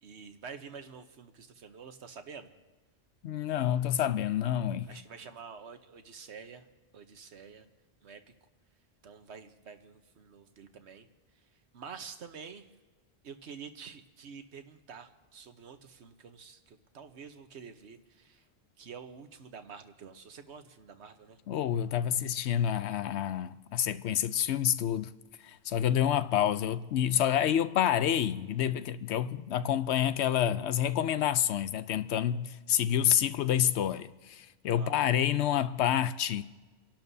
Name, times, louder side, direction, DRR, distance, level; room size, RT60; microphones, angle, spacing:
voice 1, 0.0-2.5 4.8-6.7 6.9-7.7 8.0-8.2 9.0-11.1 11.7-12.6 13.2-18.4 18.8-21.4 34.7-35.0, right 6 dB, 90° right, 1.3 m, -48 dB
voice 2, 3.2-5.0 21.5-25.1 25.4-36.4, left 10 dB, 85° left, 0.9 m, -28 dB
28.0 x 11.5 x 2.7 m
omnidirectional pair, 1.1 m